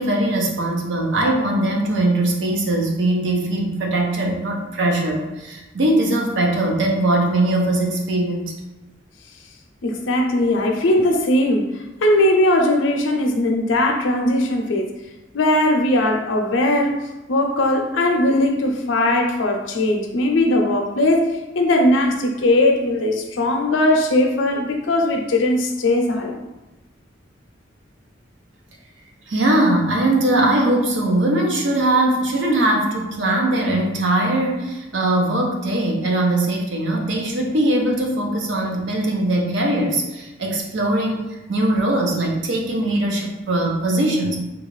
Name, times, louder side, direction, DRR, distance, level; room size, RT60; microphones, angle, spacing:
voice 1, 0.0-8.5 29.3-41.2 41.5-44.4, right 1 dB, 75° right, 0 dB, 0.6 m, -20 dB
voice 2, 9.8-15.0 15.3-17.0 17.3-21.3 21.5-26.5, left 1 dB, 85° left, 3 dB, 0.5 m, -19 dB
3.8 x 2.3 x 3.1 m, 1.0 s
head